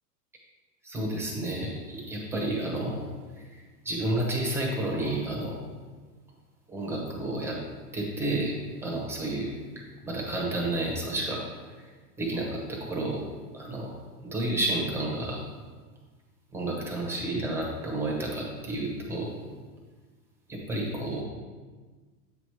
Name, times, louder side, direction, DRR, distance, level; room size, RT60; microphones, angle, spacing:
voice 1, 0.8-3.1 3.5-5.6 6.7-7.6 7.9-8.6 8.8-9.5 10.0-11.4 11.8-11.9 12.2-13.2 13.5-13.9 14.2-15.4 16.5-19.4 20.5-21.2, right 1 dB, 5° right, -2 dB, 0.8 m, -31 dB
8.0 x 3.0 x 4.6 m, 1.4 s
supercardioid pair, 140°, 47 cm